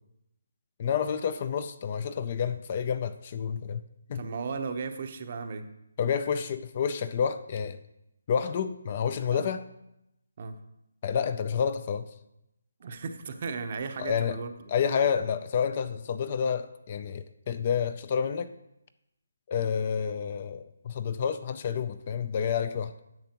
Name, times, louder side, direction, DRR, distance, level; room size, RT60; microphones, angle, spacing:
voice 1, 0.8-3.8 4.1-4.2 6.0-7.8 8.3-9.6 11.0-12.1 14.0-14.4 14.7-18.5 19.5-22.9, left 7 dB, 35° left, 12 dB, 0.4 m, -29 dB
voice 2, 4.1-5.7 9.3-9.5 10.4-10.6 12.8-14.7, right 5 dB, 40° right, 8 dB, 0.7 m, -35 dB
10.5 x 6.8 x 2.9 m, 0.85 s
hypercardioid pair, 165°, 0 cm